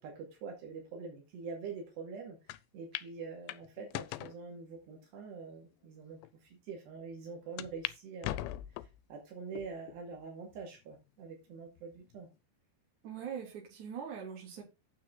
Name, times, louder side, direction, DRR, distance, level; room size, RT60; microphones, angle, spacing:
voice 1, 0.0-8.5 8.8-12.3, right 5 dB, 70° right, 4.4 m, -45 dB
sound 1, 2.5-2.6 2.9-3.1 3.5-4.4 5.0-5.1 5.8-5.9 6.2-6.3 7.6-8.0 8.2-9.0 9.6-10.0 10.5-10.6 11.8-12.2, left 15 dB, 85° left, 2.9 m, -40 dB
voice 2, 13.0-14.6, right 7 dB, 45° right, 4.2 m, -42 dB
9.3 x 7.4 x 3.9 m
omnidirectional pair, 5.1 m